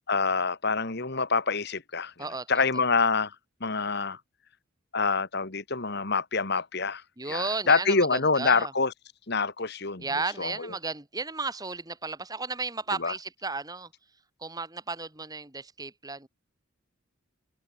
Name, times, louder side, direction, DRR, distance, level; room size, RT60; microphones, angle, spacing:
voice 1, 0.1-2.1 2.5-3.4 3.6-4.2 4.9-8.9 9.3-10.1 10.4-10.7 13.0-13.1, left 4 dB, 50° left, 1.9 m, -26 dB
voice 2, 2.2-2.6 7.2-8.7 10.0-13.9 14.4-16.3, right 3 dB, 20° right, 2.1 m, -34 dB
head